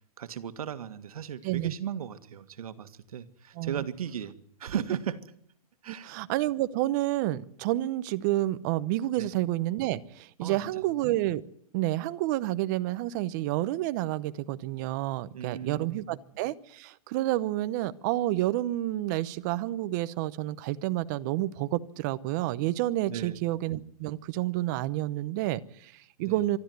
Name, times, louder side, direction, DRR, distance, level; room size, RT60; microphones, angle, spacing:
voice 1, 0.2-5.3 5.8-6.1 9.2-9.3 10.4-10.8 15.3-16.0 23.1-23.4 26.2-26.4, right 9 dB, 70° right, 1.8 m, -36 dB
voice 2, 1.4-1.7 3.6-3.8 5.9-11.4 11.7-26.6, right 15 dB, 30° right, 0.9 m, -29 dB
24.5 x 13.0 x 9.5 m
hypercardioid pair, 160°, 19 cm